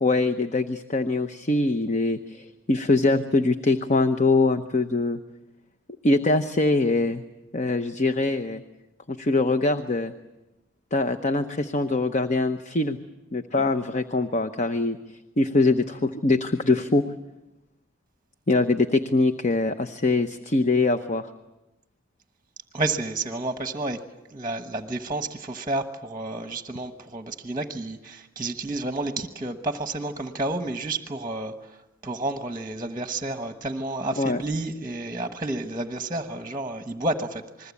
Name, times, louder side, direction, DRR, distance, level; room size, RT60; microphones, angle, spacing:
voice 1, 0.0-5.2 6.0-7.2 7.5-8.6 9.1-10.1 10.9-13.0 13.3-15.0 15.4-17.0 18.5-21.3 34.2-34.4, left 2 dB, 35° left, 9 dB, 0.8 m, -23 dB
voice 2, 22.7-24.0 24.3-37.7, right 2 dB, 15° right, 7 dB, 1.1 m, -30 dB
28.0 x 21.0 x 8.4 m, 0.97 s
head